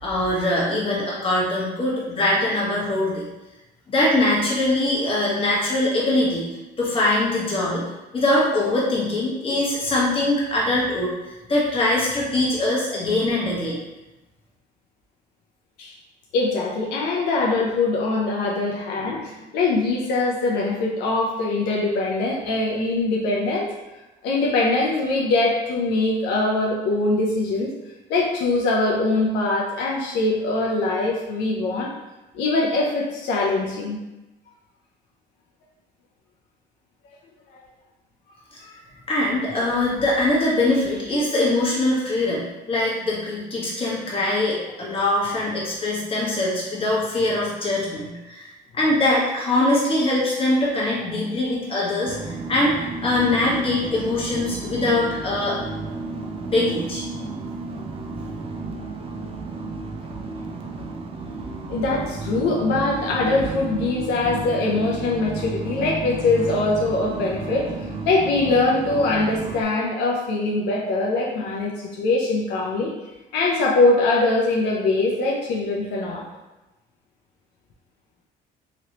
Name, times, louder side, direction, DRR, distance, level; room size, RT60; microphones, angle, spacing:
voice 1, 0.0-3.3 3.9-6.5 6.8-7.8 8.1-13.8 39.1-48.5 48.7-55.6 56.4-57.0, left 1 dB, 35° left, -6 dB, 1.2 m, -22 dB
voice 2, 16.3-23.7 24.2-27.7 28.1-31.9 32.3-34.0 37.5-37.6 38.6-38.7 61.7-72.9 73.3-76.2, left 2 dB, 85° left, -2 dB, 0.5 m, -22 dB
sound 1, 52.0-69.6, right 3 dB, 35° right, 0.4 m, -32 dB
3.0 x 2.9 x 2.9 m, 1.0 s
cardioid pair, 110°, 17 cm